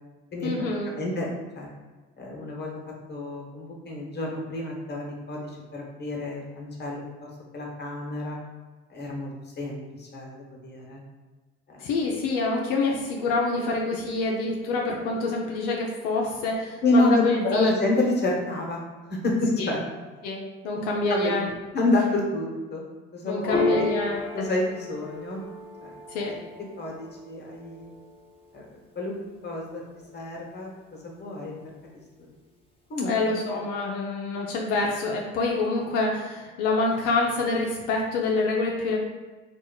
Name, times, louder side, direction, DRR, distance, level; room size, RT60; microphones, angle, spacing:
voice 1, 0.4-0.9 11.8-17.7 19.6-19.7 20.2-21.5 23.2-24.5 26.1-26.3 33.0-39.0, left 3 dB, 85° left, -2 dB, 0.5 m, -26 dB
voice 2, 1.0-1.3 1.5-1.7 2.2-2.7 3.1-8.4 8.9-9.3 9.6-11.0 11.7-11.8 16.8-18.8 19.1-19.8 21.1-21.4 21.7-22.8 23.1-23.9 24.3-25.4 25.8-25.9 26.2-26.3 26.8-27.9 28.5-28.6 28.9-29.2 29.4-29.8 30.1-31.5 32.9-33.2, left 2 dB, 35° left, -1 dB, 1.1 m, -28 dB
Piano, 23.5-30.4, left 2 dB, 20° left, 1.0 m, -34 dB
2.9 x 2.4 x 3.8 m, 1.3 s
supercardioid pair, 65°, 29 cm